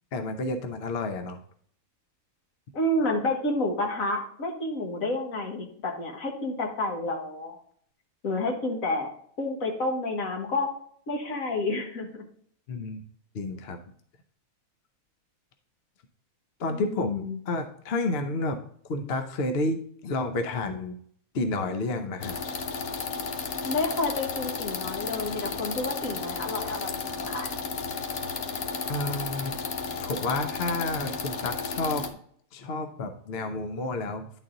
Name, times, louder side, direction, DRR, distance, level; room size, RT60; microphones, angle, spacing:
voice 1, 0.1-1.4 12.7-13.0 13.3-13.8 16.6-18.6 18.9-21.0 21.3-22.3 28.9-29.5 30.0-32.0 32.5-34.3, left 2 dB, 55° left, 6 dB, 0.9 m, -30 dB
voice 2, 2.7-7.6 8.2-9.1 9.4-10.8 11.1-12.2 16.7-17.4 23.6-27.5, left 2 dB, 75° left, 2 dB, 1.9 m, -30 dB
sound 1, 22.2-32.1, left 5 dB, 90° left, 1.3 m, -33 dB
10.0 x 4.2 x 3.7 m, 0.62 s
omnidirectional pair, 1.4 m